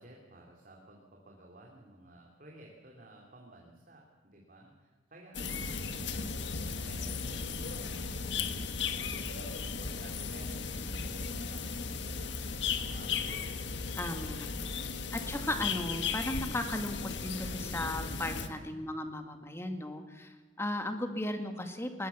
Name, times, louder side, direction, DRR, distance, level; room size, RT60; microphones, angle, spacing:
voice 1, 0.0-13.6 13.8-15.0 18.4-18.8, right 1 dB, 50° right, -1 dB, 3.2 m, -54 dB
sound 1, 5.3-18.5, left 5 dB, 75° left, 1.5 m, -36 dB
voice 2, 14.0-14.5 15.1-22.1, left 1 dB, 15° left, 6 dB, 1.9 m, -36 dB
20.5 x 20.0 x 7.1 m, 1.3 s
head